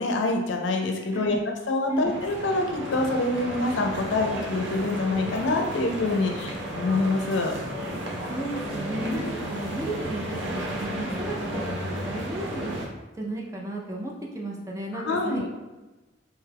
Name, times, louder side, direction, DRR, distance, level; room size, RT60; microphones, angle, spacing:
voice 1, 0.0-1.4 1.7-7.5 9.1-9.4 14.9-15.5, left 2 dB, 80° left, 3 dB, 0.5 m, -26 dB
sound 1, 2.0-12.9, right 1 dB, 75° right, 0.6 m, -33 dB
voice 2, 8.3-12.7 13.2-15.5, right 1 dB, 15° right, -2 dB, 0.4 m, -33 dB
2.9 x 2.3 x 3.3 m, 1.1 s
head